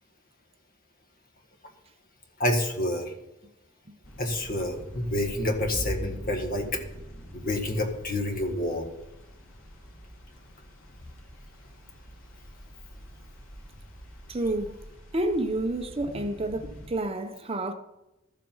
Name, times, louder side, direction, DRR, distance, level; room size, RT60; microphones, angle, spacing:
voice 1, 2.4-3.1 4.2-6.8 7.3-8.8, left 1 dB, 45° left, 1.7 m, -28 dB
sound 1, 4.0-16.9, equal, 75° left, 2.5 m, -43 dB
voice 2, 14.3-14.7 15.1-17.7, right 1 dB, 30° right, 0.8 m, -29 dB
13.0 x 7.5 x 5.5 m
head